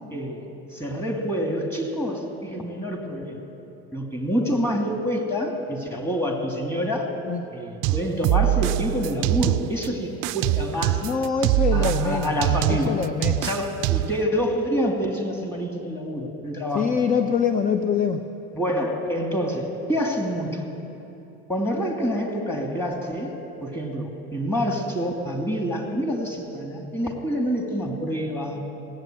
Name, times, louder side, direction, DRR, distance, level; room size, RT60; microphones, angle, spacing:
voice 1, 0.1-0.5 0.7-3.4 3.9-7.1 7.5-11.0 11.7-13.0 13.4-16.9 18.5-20.6 21.5-23.3 23.6-28.6, equal, 5° left, 1 dB, 2.6 m, -27 dB
sound 1, 7.8-9.9 10.2-14.2, right 15 dB, 65° right, 0.5 m, -23 dB
voice 2, 11.0-12.3 12.7-13.5 16.7-18.2, left 6 dB, 25° left, 8 dB, 0.7 m, -24 dB
18.0 x 8.5 x 9.1 m, 2.9 s
supercardioid pair, 95°, 33 cm